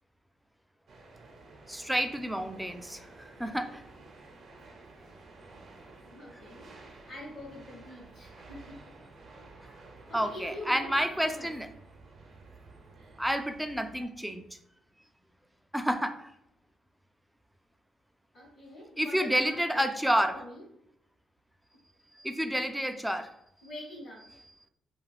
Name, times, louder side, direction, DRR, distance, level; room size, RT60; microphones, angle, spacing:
sound 1, 0.9-14.1, right 3 dB, 50° right, 0.6 m, -52 dB
voice 1, 1.7-3.8 10.1-11.7 13.2-14.4 15.7-16.3 19.0-20.4 22.2-23.3, equal, 5° right, 7 dB, 0.3 m, -29 dB
voice 2, 6.1-8.8 9.5-9.8 10.1-11.5 18.3-20.6 23.6-24.2, left 1 dB, 55° left, -7 dB, 0.9 m, -45 dB
2.4 x 2.3 x 3.3 m, 0.77 s
cardioid pair, 90°, 0 cm